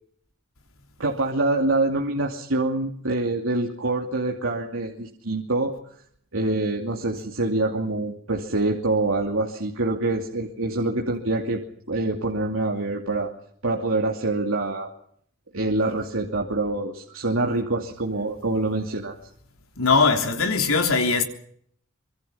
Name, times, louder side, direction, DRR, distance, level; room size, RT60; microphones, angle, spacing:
voice 1, 1.0-5.7 6.3-11.6 11.9-13.3 13.6-14.9 15.5-19.1, right 2 dB, 75° right, 2.7 m, -25 dB
voice 2, 19.8-21.2, left 4 dB, 80° left, 3.5 m, -20 dB
26.0 x 23.0 x 5.7 m
head